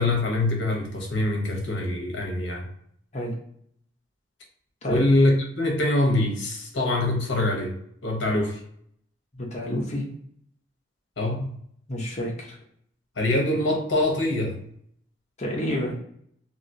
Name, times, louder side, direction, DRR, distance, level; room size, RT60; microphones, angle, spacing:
voice 1, 0.0-2.7 4.8-7.7 8.0-8.6 11.2-11.4 13.2-14.6, left 1 dB, 70° left, 1 dB, 0.9 m, -24 dB
voice 2, 9.3-10.0 11.9-12.6 15.4-16.0, left 1 dB, 35° left, -2 dB, 0.8 m, -29 dB
2.9 x 2.8 x 2.7 m, 0.67 s
head